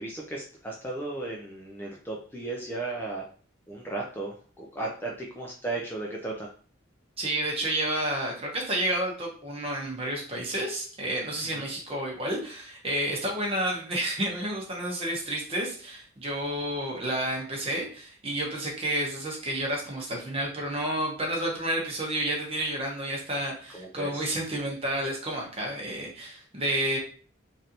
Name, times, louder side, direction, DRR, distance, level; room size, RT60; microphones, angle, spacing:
voice 1, 0.0-3.3 3.7-6.5 11.6-11.7 23.7-24.2, right 2 dB, 10° left, -2 dB, 0.4 m, -35 dB
voice 2, 7.2-27.0, right 1 dB, 30° right, -1 dB, 0.8 m, -30 dB
3.2 x 2.6 x 2.8 m, 0.42 s
head